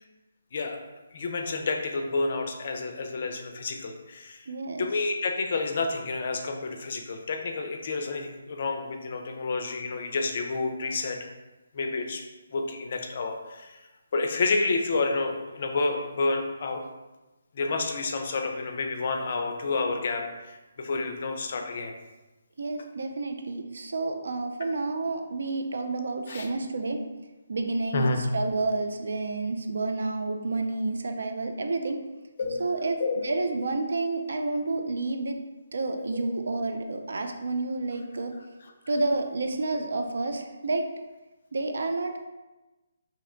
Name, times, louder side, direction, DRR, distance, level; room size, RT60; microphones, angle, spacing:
voice 1, 1.1-4.5 4.8-11.2 11.7-12.2 12.5-13.8 14.1-16.8 17.5-21.9 26.3-26.5 27.9-28.2 32.4-32.7 33.0-33.3 36.1-36.3, left 3 dB, 50° left, 4 dB, 0.4 m, -29 dB
voice 2, 4.5-4.9 22.6-27.0 27.5-32.0 32.6-35.4 35.7-38.3 38.9-40.9 41.5-42.3, right 3 dB, 70° right, 5 dB, 0.3 m, -30 dB
2.7 x 2.1 x 3.7 m, 1.1 s
hypercardioid pair, 155°, 0 cm